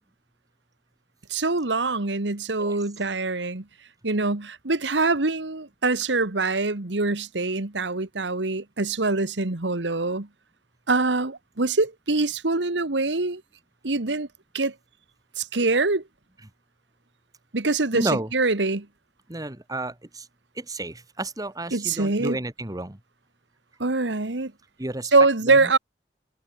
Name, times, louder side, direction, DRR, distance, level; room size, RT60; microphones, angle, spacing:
voice 1, 1.3-3.6 4.0-10.3 10.9-13.4 13.8-14.3 14.5-14.7 15.4-16.0 17.5-18.9 21.7-22.4 23.8-24.5 25.1-25.8, right 3 dB, 80° right, 1.7 m, -24 dB
voice 2, 17.9-18.3 19.3-20.3 20.5-23.0 24.8-25.1 25.5-25.7, right 2 dB, 20° right, 1.7 m, -31 dB
head